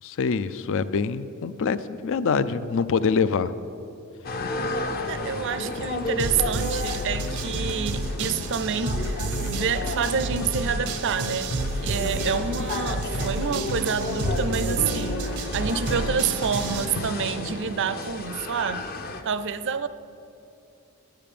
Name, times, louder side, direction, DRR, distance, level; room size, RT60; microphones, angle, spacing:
voice 1, 0.0-3.5, left 5 dB, 60° left, 0.4 m, -25 dB
sound 1, 4.2-19.2, left 2 dB, 45° left, 0.8 m, -33 dB
voice 2, 5.1-11.5 11.8-18.9 19.2-19.9, right 6 dB, 55° right, 0.5 m, -28 dB
sound 2, 5.6-17.5, left 1 dB, 90° left, 0.8 m, -36 dB
sound 3, 6.2-16.9, right 2 dB, 85° right, 0.8 m, -31 dB
10.0 x 9.0 x 6.9 m
head